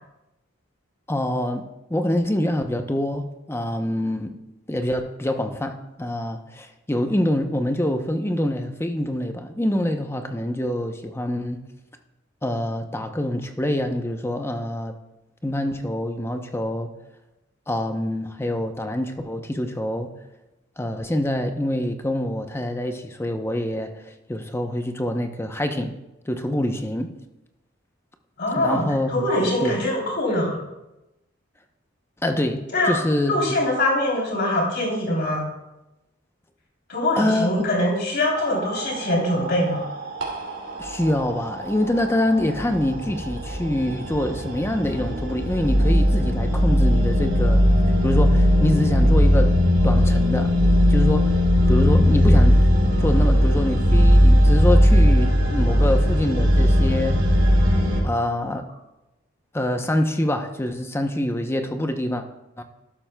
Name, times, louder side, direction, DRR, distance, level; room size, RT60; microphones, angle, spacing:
voice 1, 1.1-4.3 4.7-11.6 12.4-15.0 15.4-16.9 17.7-20.1 20.8-25.9 26.3-27.1 28.6-29.3 29.6-29.8 32.2-33.6 37.2-37.7 40.8-47.7 48.0-49.5 49.8-50.6 50.9-51.4 51.7-52.6 53.0-57.2 58.0-58.6 59.5-62.2 62.6-62.7, left 1 dB, 15° left, 6 dB, 0.7 m, -25 dB
voice 2, 28.4-30.6 32.7-35.4 36.9-39.9, left 1 dB, 60° left, -3 dB, 3.2 m, -23 dB
sound 1, 38.3-58.0, equal, 80° right, 2.7 m, -19 dB
12.0 x 12.0 x 2.2 m, 0.95 s
head